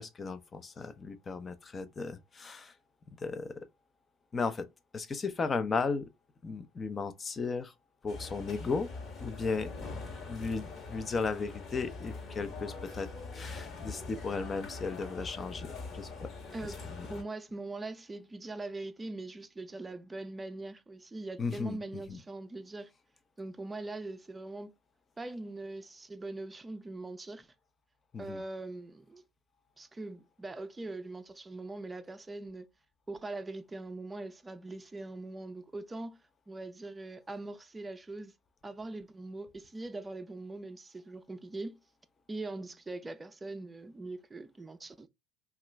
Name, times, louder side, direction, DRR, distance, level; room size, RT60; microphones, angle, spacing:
voice 1, 0.0-2.8 3.2-3.7 4.3-4.7 4.9-6.1 6.4-7.7 8.0-8.9 9.2-9.7 10.3-16.3 16.6-17.1 21.4-22.2 28.1-28.4, left 4 dB, 30° left, 0.6 m, -35 dB
sound 1, 8.1-17.2, left 3 dB, 45° left, 1.2 m, -43 dB
voice 2, 17.1-22.9 23.4-24.7 25.2-27.5 28.2-29.2 29.8-32.7 33.1-36.2 36.5-38.3 38.6-41.8 42.3-45.1, right 2 dB, 20° right, 0.5 m, -42 dB
2.9 x 2.4 x 3.2 m
hypercardioid pair, 80°, 0 cm